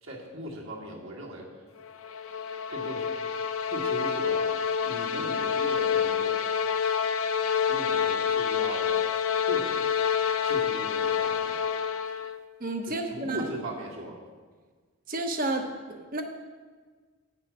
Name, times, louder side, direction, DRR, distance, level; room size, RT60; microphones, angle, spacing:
voice 1, 0.0-1.5 2.7-3.1 3.7-4.5 4.8-6.4 7.7-9.0 9.5-9.9 10.4-11.6 12.9-14.1, right 1 dB, 60° right, -3 dB, 2.1 m, -38 dB
sound 1, 1.9-12.4, left 7 dB, 65° left, 0.5 m, -27 dB
voice 2, 12.6-13.5 15.1-16.2, right 2 dB, 40° right, 5 dB, 0.9 m, -31 dB
9.5 x 5.8 x 7.4 m, 1.5 s
head